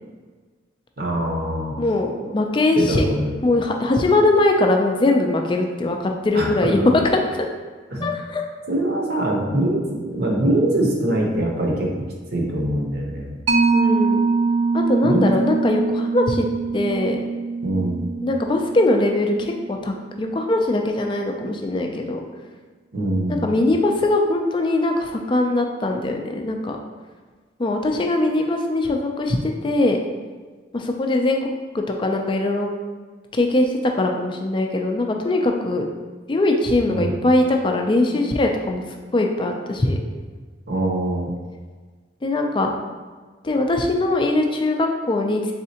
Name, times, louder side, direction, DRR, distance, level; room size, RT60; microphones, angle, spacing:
voice 1, 1.0-1.8 2.8-3.3 6.3-6.7 7.9-8.1 8.7-12.0 12.3-13.4 15.0-15.3 17.6-18.0 22.9-23.4 36.9-37.1 40.7-41.3, right 1 dB, 50° right, -1 dB, 0.7 m, -23 dB
voice 2, 1.8-3.0 3.4-6.8 8.0-8.4 13.7-14.2 14.7-16.5 16.7-17.2 18.2-22.2 23.3-26.8 27.6-29.4 29.6-30.0 30.7-32.7 33.3-35.9 36.3-38.8 39.1-40.0 42.2-42.7 43.4-45.5, left 2 dB, 25° left, 3 dB, 0.3 m, -21 dB
Mallet percussion, 13.5-20.5, right 4 dB, 85° right, 0.5 m, -23 dB
4.1 x 3.6 x 2.8 m, 1.4 s
head